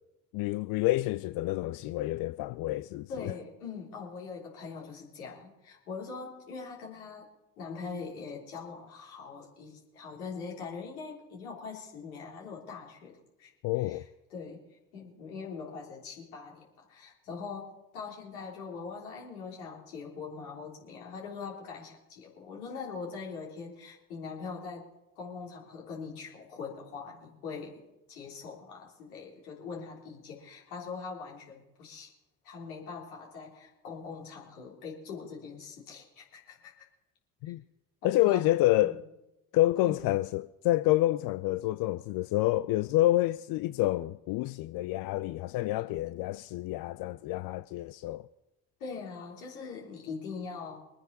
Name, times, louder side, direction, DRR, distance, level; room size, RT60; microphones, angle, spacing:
voice 1, 0.3-3.3 13.6-14.0 37.4-37.6 38.0-39.0 39.5-48.3, left 16 dB, 50° left, 0.5 m, -28 dB
voice 2, 3.1-7.3 7.6-13.5 13.8-14.0 14.3-14.6 14.9-24.9 25.2-27.8 28.1-32.1 32.4-36.9 37.5-37.6 38.0-38.4 38.8-39.0 39.8-40.0 48.8-50.8, left 5 dB, 75° left, 3.5 m, -42 dB
24.5 x 9.5 x 4.0 m
figure-of-eight pair, 50°, 44 cm